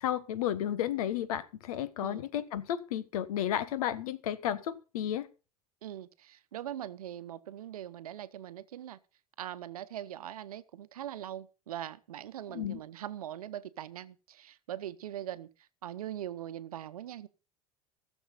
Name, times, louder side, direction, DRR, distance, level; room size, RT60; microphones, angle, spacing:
voice 1, 0.0-5.3 12.5-12.8, left 10 dB, 75° left, 1.4 m, -33 dB
voice 2, 5.8-9.0 9.4-17.3, right 11 dB, 85° right, 0.9 m, -41 dB
17.5 x 7.2 x 5.5 m
hypercardioid pair, 80°, 19 cm